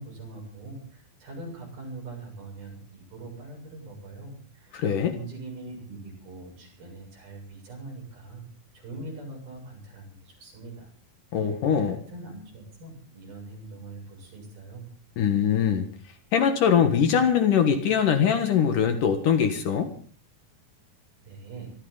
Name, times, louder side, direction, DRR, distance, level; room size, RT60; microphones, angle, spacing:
voice 1, 0.0-8.4 8.7-10.9 11.4-14.9 21.2-21.7, right 2 dB, 85° right, 1 dB, 9.2 m, -42 dB
voice 2, 4.7-5.2 11.3-12.0 15.2-15.9 16.3-19.9, left 8 dB, 65° left, 7 dB, 3.0 m, -22 dB
24.0 x 15.0 x 4.0 m, 0.42 s
omnidirectional pair, 4.2 m